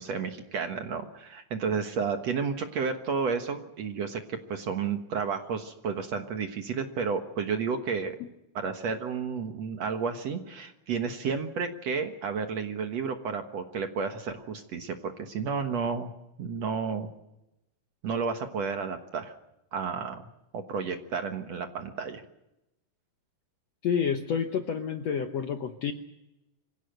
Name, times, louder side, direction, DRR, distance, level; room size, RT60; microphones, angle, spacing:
voice 1, 0.0-8.2 8.5-16.1 16.4-17.1 18.0-19.3 19.7-20.2 20.5-22.2, right 5 dB, 55° right, 6 dB, 2.1 m, -31 dB
voice 2, 23.8-25.9, left 7 dB, 70° left, 6 dB, 1.6 m, -29 dB
25.0 x 17.0 x 7.9 m, 0.90 s
omnidirectional pair, 4.2 m